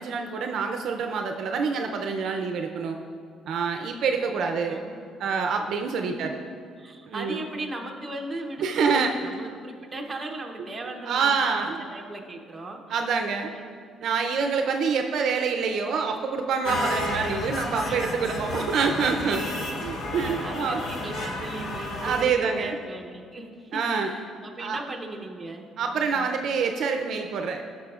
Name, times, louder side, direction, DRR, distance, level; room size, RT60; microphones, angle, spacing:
voice 1, 0.0-3.0 3.5-4.8 5.2-6.3 7.0-7.4 8.6-9.1 11.1-11.8 12.9-13.5 14.0-20.8 22.0-22.8 23.7-24.1 24.6-24.8 25.8-27.6, right 5 dB, 55° right, 4 dB, 0.5 m, -26 dB
voice 2, 4.6-5.0 6.1-6.3 6.8-12.8 13.5-13.8 17.8-18.0 19.6-19.7 20.1-26.3, right 2 dB, 15° right, 1 dB, 0.7 m, -37 dB
sound 1, 16.6-22.2, left 1 dB, 50° left, 1.0 m, -31 dB
16.0 x 6.1 x 2.4 m, 2.2 s
cardioid pair, 165°, 0 cm